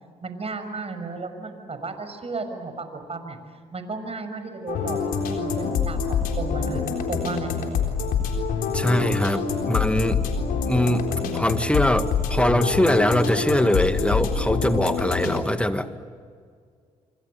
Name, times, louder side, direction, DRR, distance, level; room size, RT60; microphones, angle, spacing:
voice 1, 0.2-3.4 3.7-6.8 7.1-7.5, right 3 dB, 45° right, 8 dB, 6.3 m, -34 dB
sound 1, 4.7-15.4, left 6 dB, 85° left, 3.8 m, -26 dB
voice 2, 8.7-10.3 10.7-15.9, equal, 10° left, 9 dB, 2.1 m, -22 dB
27.5 x 26.0 x 8.0 m, 2.1 s
supercardioid pair, 55°, 15 cm